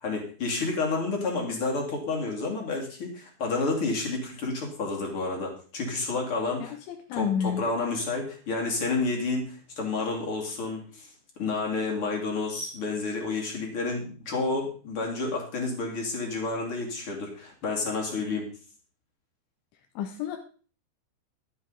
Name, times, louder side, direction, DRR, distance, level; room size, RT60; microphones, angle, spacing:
voice 1, 0.0-6.8 7.1-11.1 11.4-18.5, left 3 dB, 35° left, 0 dB, 2.7 m, -30 dB
voice 2, 6.6-7.6 20.0-20.4, left 8 dB, 85° left, 3 dB, 3.5 m, -30 dB
12.0 x 9.8 x 4.0 m, 0.39 s
omnidirectional pair, 5.3 m